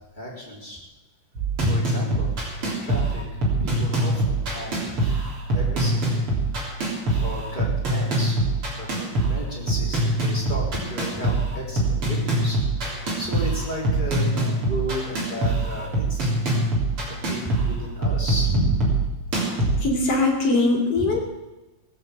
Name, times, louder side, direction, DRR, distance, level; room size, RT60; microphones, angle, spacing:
voice 1, 0.2-0.8 1.6-6.5 7.2-8.5 8.7-12.6 12.9-16.4 17.1-19.0 21.0-21.2, equal, 15° left, -4 dB, 3.7 m, -33 dB
sound 1, 1.4-19.9, right 2 dB, 40° right, 4.3 m, -24 dB
voice 2, 19.8-21.2, left 2 dB, 45° left, 0 dB, 3.5 m, -21 dB
18.5 x 7.9 x 7.9 m, 1.1 s
omnidirectional pair, 3.8 m